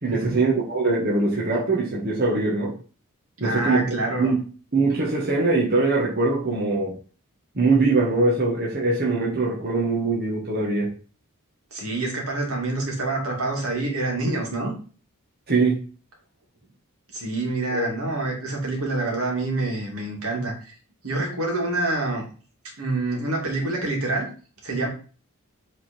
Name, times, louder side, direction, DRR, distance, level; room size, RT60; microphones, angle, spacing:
voice 1, 0.0-2.7 3.4-4.4 4.7-6.9 7.6-10.9 15.5-15.8 17.7-17.9, right 3 dB, 45° right, -4 dB, 1.9 m, -22 dB
voice 2, 3.4-4.3 11.7-14.7 17.1-20.7 21.0-22.2 22.8-24.3 24.6-24.9, right 2 dB, 75° right, 0 dB, 2.8 m, -27 dB
8.0 x 4.4 x 4.5 m, 0.39 s
head